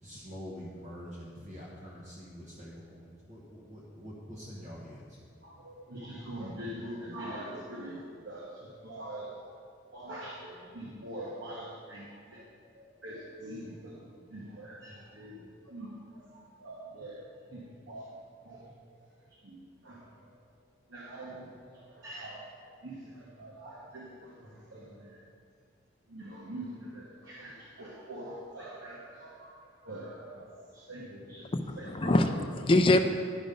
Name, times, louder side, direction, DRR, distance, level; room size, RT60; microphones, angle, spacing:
voice 1, 0.0-5.2, equal, 35° right, -6 dB, 1.2 m, -45 dB
voice 2, 5.4-8.4 8.8-9.4 9.9-12.4 12.8-13.9 14.3-15.4 15.7-15.9 16.3-18.1 18.4-18.6 19.4-19.6 19.8-20.0 20.9-22.4 22.8-25.2 26.1-29.5 29.8-30.5 30.9-31.4 31.8-32.2, right 1 dB, 75° right, -4 dB, 1.2 m, -43 dB
voice 3, 31.5-33.0, left 2 dB, 25° left, 6 dB, 0.4 m, -24 dB
10.5 x 5.1 x 5.2 m, 2.2 s
head